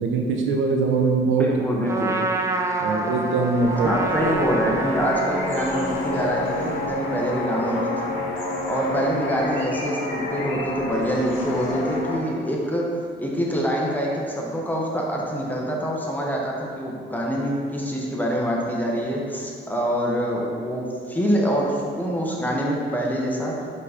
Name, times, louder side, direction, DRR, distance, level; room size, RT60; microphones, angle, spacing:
voice 1, 0.0-1.5 1.7-1.9 2.8-3.9, right 4 dB, 75° right, 2 dB, 0.8 m, -22 dB
voice 2, 1.4-2.2 3.8-8.1 8.7-12.9 13.2-23.5, equal, 10° left, -3 dB, 1.2 m, -25 dB
Trumpet, 1.9-7.1, right 2 dB, 15° right, 0.5 m, -28 dB
sound 1, 3.5-12.2, left 1 dB, 85° left, 1.1 m, -29 dB
5.4 x 4.1 x 5.0 m, 2.2 s
cardioid pair, 90°, 20 cm